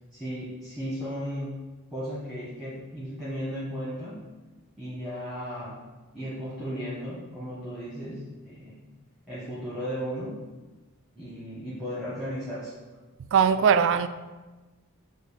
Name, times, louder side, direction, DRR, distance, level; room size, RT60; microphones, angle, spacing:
voice 1, 0.1-1.5 1.9-4.2 4.8-5.8 6.1-8.8 9.3-10.4 11.1-12.7, equal, ahead, 1.4 m, -35 dB
voice 2, 13.3-14.1, right 7 dB, 60° right, 0.3 m, -20 dB
7.4 x 2.6 x 5.0 m
head